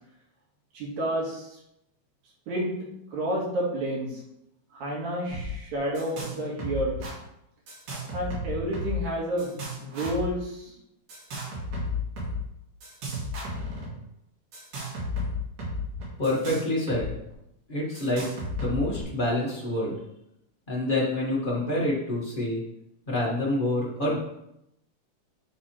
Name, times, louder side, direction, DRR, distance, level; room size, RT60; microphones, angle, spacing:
voice 1, 0.7-1.5 2.5-2.7 3.1-4.2 4.7-7.1 8.1-10.7, right 1 dB, 65° right, -4 dB, 3.4 m, -30 dB
sound 1, 5.3-5.5 5.7-6.3 6.6-7.1 7.7-9.1 9.4-10.3 11.1-12.4 12.8-13.9 14.5-17.1 17.3-17.4 18.0-19.0, left 1 dB, 85° right, 4.0 m, -33 dB
voice 2, 16.2-17.1 17.7-18.3 18.6-19.9 20.7-22.6 23.1-24.2, left 1 dB, 25° left, -6 dB, 1.0 m, -27 dB
10.5 x 3.5 x 4.5 m, 0.82 s
omnidirectional pair, 3.6 m